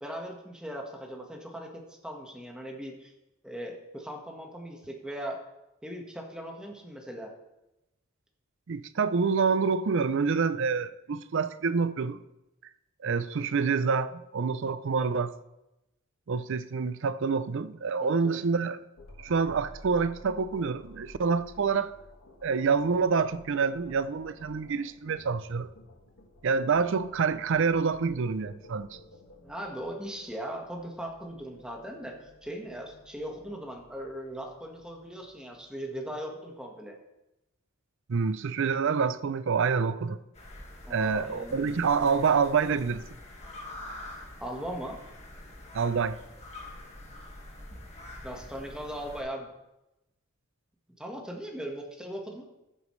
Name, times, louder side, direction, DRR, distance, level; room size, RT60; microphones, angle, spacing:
voice 1, 0.0-3.1 3.4-5.4 5.8-7.3 18.0-18.4 29.4-37.0 40.8-41.6 44.4-45.0 48.2-49.5 51.0-52.5, equal, 5° right, 1.4 m, -39 dB
voice 2, 8.7-12.2 13.0-15.3 16.3-18.8 19.2-21.9 22.4-25.7 26.4-29.0 38.1-40.2 40.9-43.0 45.7-46.2, right 5 dB, 60° right, 0.5 m, -27 dB
sound 1, 19.0-36.2, left 1 dB, 85° left, 1.8 m, -53 dB
sound 2, 40.4-49.2, left 1 dB, 30° left, 1.8 m, -45 dB
14.5 x 8.1 x 3.2 m
head